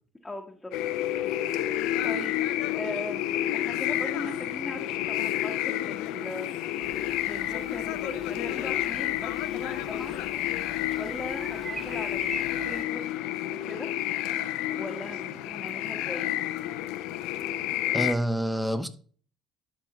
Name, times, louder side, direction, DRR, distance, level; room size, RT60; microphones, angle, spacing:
voice 1, 0.2-0.7 2.0-10.1 11.0-13.0 13.5-13.9 14.7-16.3, left 1 dB, 10° left, 0 dB, 1.3 m, -40 dB
sound 1, 0.7-18.1, left 13 dB, 75° left, 0.6 m, -30 dB
sound 2, 6.8-12.8, right 3 dB, 25° right, 0.5 m, -44 dB
voice 2, 17.9-18.9, equal, 5° right, 11 dB, 1.1 m, -27 dB
12.0 x 4.8 x 3.0 m, 0.43 s
hypercardioid pair, 60°, 0 cm